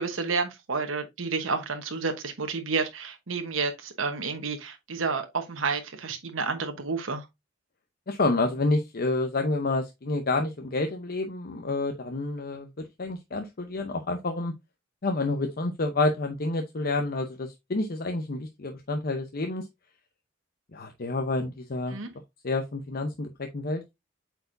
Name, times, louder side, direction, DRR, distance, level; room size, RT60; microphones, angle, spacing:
voice 1, 0.0-7.3 21.9-22.1, right 4 dB, 85° right, 1.0 m, -30 dB
voice 2, 8.1-14.5 15.0-19.6 20.7-22.0 22.4-24.0, left 2 dB, 50° left, 0.8 m, -29 dB
7.9 x 4.7 x 2.6 m
head